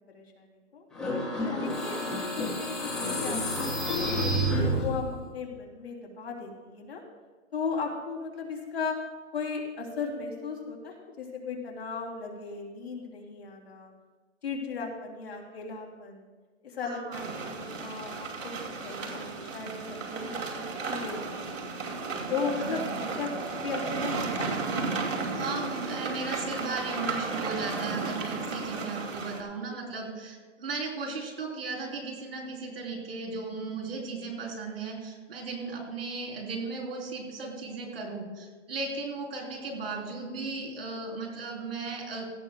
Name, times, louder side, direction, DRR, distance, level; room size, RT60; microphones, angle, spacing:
voice 1, 0.1-0.8 1.3-5.0 5.3-7.0 7.5-8.9 9.3-13.9 14.4-16.3 16.6-18.5 18.8-21.7 22.3-24.6, left 5 dB, 50° left, -1 dB, 2.9 m, -37 dB
sound 1, 0.9-5.2, equal, ahead, 1.3 m, -29 dB
voice 2, 16.8-17.2 22.6-22.9 25.4-42.3, right 3 dB, 50° right, 0 dB, 3.6 m, -36 dB
sound 2, 17.1-29.4, right 4 dB, 80° right, 2.5 m, -34 dB
17.0 x 14.0 x 2.2 m, 1.4 s
hypercardioid pair, 175°, 38 cm